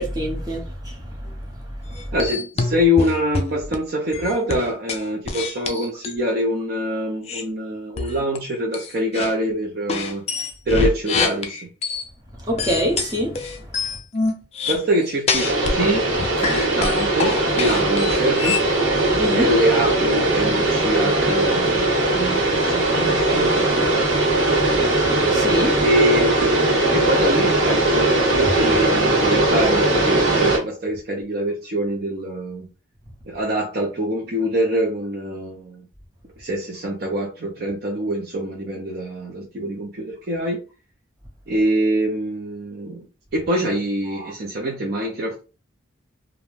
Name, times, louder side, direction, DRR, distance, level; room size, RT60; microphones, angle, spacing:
voice 1, 0.0-1.4 1.8-2.0 12.4-13.7 19.0-19.5 21.5-21.6 24.6-25.8 44.1-44.3, equal, 20° right, 0.7 m, -26 dB
sound 1, 1.9-3.8 4.1-6.2 7.3-7.4 8.0-8.4 8.7-9.3 9.9-12.1 12.6-15.8 16.1-18.7, left 4 dB, 30° left, 0.3 m, -26 dB
voice 2, 2.1-10.2 10.7-11.7 14.7-16.1 16.4-18.6 19.3-21.9 22.1-23.9 25.8-32.7 33.3-35.8 36.4-40.6 41.5-43.0 43.3-45.4, equal, 50° right, 0.5 m, -24 dB
sound 2, 15.3-30.6, right 2 dB, 90° right, 1.1 m, -19 dB
2.5 x 2.1 x 3.1 m
head